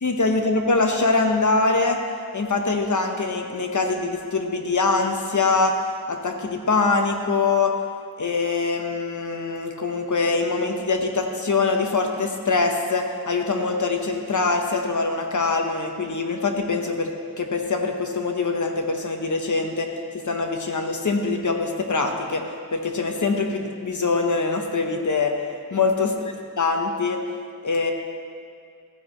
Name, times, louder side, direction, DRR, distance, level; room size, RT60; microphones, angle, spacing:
voice 1, 0.0-2.0 2.3-5.8 6.1-7.7 8.2-22.4 22.7-25.4 25.7-26.1 26.6-27.2 27.6-27.9, left 3 dB, 60° left, 3 dB, 1.1 m, -23 dB
14.5 x 9.7 x 3.1 m, 2.3 s
wide cardioid pair, 90°, 33 cm